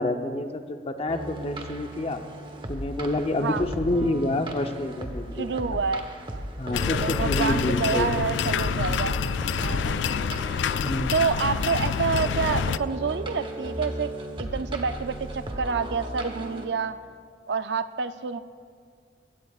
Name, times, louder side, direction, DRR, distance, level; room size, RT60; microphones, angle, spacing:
voice 1, 0.0-2.2 2.7-5.8 6.6-8.1 8.7-9.0 10.7-11.2, left 1 dB, 35° left, 6 dB, 0.7 m, -28 dB
sound 1, 1.1-16.7, right 1 dB, 30° right, 1.1 m, -35 dB
voice 2, 5.4-6.0 6.9-9.2 9.6-10.1 11.1-14.1 14.4-17.0 17.5-18.4, right 5 dB, 70° right, 11 dB, 0.5 m, -28 dB
sound 2, 6.7-12.8, left 7 dB, 85° left, 0.3 m, -27 dB
22.0 x 16.5 x 2.4 m, 2.1 s
head